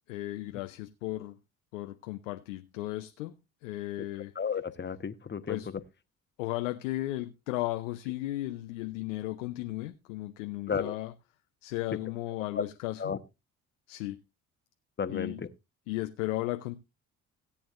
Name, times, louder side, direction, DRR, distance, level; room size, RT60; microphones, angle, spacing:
voice 1, 0.1-1.4 1.7-4.3 5.5-5.7 6.4-11.1 11.6-13.1 13.9-14.2 15.1-15.4 15.9-16.7, left 17 dB, 80° left, 0.7 m, -35 dB
voice 2, 4.3-5.6 10.7-10.9 12.6-12.7 13.0-13.2 15.0-15.5, left 6 dB, 30° left, 1.1 m, -32 dB
17.5 x 8.7 x 2.5 m
hypercardioid pair, 55°, 39 cm